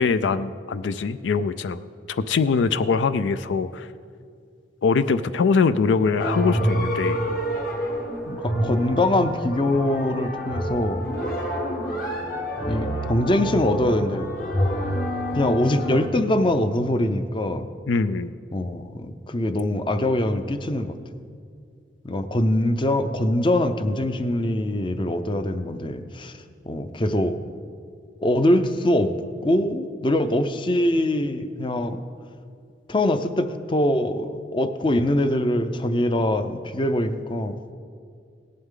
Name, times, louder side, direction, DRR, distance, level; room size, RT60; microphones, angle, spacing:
voice 1, 0.0-1.8 2.1-3.9 4.8-7.2 17.9-18.3, left 5 dB, 85° left, 13 dB, 0.4 m, -22 dB
sound 1, 6.2-16.1, equal, 50° left, 1.4 m, -27 dB
voice 2, 8.3-11.1 12.7-14.3 15.3-17.7 18.5-21.0 22.0-26.3 26.7-27.4 28.2-29.1 29.4-32.0 32.9-37.6, left 1 dB, 25° left, 10 dB, 0.5 m, -23 dB
17.0 x 11.0 x 3.7 m, 2.2 s
head